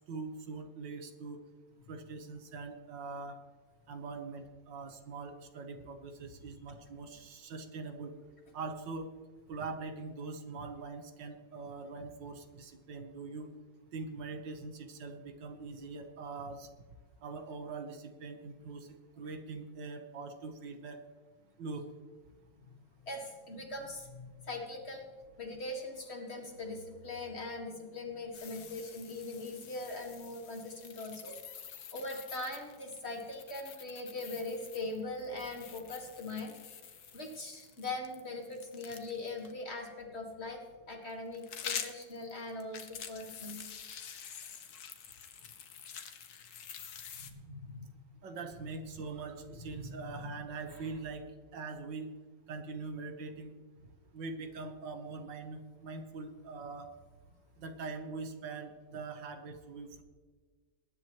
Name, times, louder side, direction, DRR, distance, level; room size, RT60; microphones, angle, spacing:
voice 1, 0.1-1.4 1.9-3.4 3.9-8.1 8.5-9.1 9.5-13.5 13.9-16.7 17.2-18.9 19.2-21.0 21.6-21.9 48.2-51.2 51.5-52.1 52.5-53.6 54.1-56.9 57.6-60.0, right 4 dB, 90° right, 6 dB, 1.9 m, -43 dB
voice 2, 23.1-25.1 25.4-36.6 37.1-43.6 47.1-47.9 49.5-50.3 50.7-50.9, left 2 dB, 35° left, 1 dB, 2.2 m, -41 dB
sound 1, 28.3-39.5 41.1-47.3, left 7 dB, 60° left, 1.5 m, -47 dB
21.0 x 10.5 x 3.1 m, 1.5 s
omnidirectional pair, 1.9 m